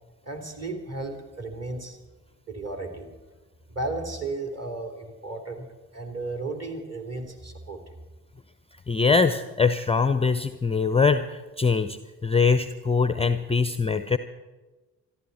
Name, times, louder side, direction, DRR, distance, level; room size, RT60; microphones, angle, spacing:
voice 1, 0.2-2.0 2.5-3.1 3.7-5.7 5.9-8.0, right 2 dB, 35° right, 4 dB, 3.6 m, -34 dB
voice 2, 8.9-14.2, left 5 dB, 15° left, 11 dB, 0.7 m, -23 dB
27.0 x 11.5 x 4.3 m, 1.2 s
figure-of-eight pair, 45°, 46 cm